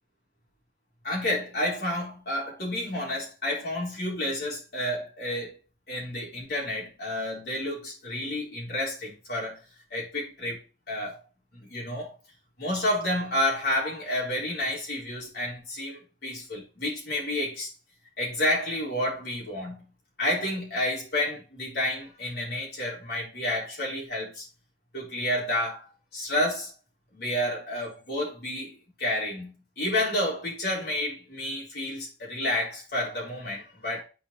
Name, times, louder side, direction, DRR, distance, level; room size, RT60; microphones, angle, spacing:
voice 1, 1.0-5.6 5.9-9.6 9.9-10.6 10.9-11.2 11.5-12.1 12.6-17.7 18.2-19.8 20.2-24.4 24.9-26.7 27.1-34.0, left 1 dB, 60° left, 4.5 m, -30 dB
8.5 x 5.3 x 3.2 m
head